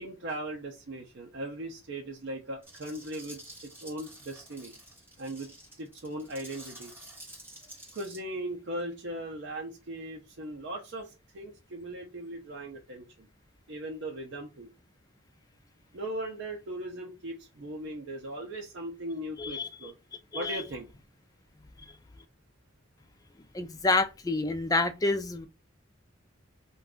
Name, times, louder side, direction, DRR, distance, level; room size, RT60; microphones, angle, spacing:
voice 1, 0.0-3.4 3.8-4.7 5.2-6.9 7.9-13.3 13.7-14.7 15.9-19.9 20.3-20.9, right 1 dB, 60° right, 0.6 m, -38 dB
sound 1, 2.6-8.2, right 1 dB, 10° right, 1.1 m, -49 dB
voice 2, 20.3-20.6 23.5-25.5, left 3 dB, 20° left, 0.4 m, -28 dB
2.5 x 2.3 x 3.5 m
head